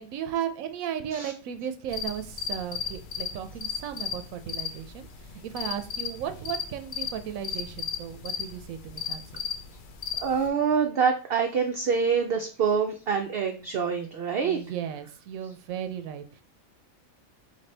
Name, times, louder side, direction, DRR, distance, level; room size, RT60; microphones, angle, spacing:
voice 1, 0.0-9.2 14.4-16.4, right 9 dB, 85° right, 9 dB, 1.0 m, -35 dB
sound 1, 1.9-10.5, left 7 dB, 60° left, 0.5 m, -36 dB
voice 2, 10.2-14.6, right 6 dB, 65° right, 4 dB, 0.6 m, -26 dB
4.1 x 3.2 x 3.3 m, 0.37 s
omnidirectional pair, 1.4 m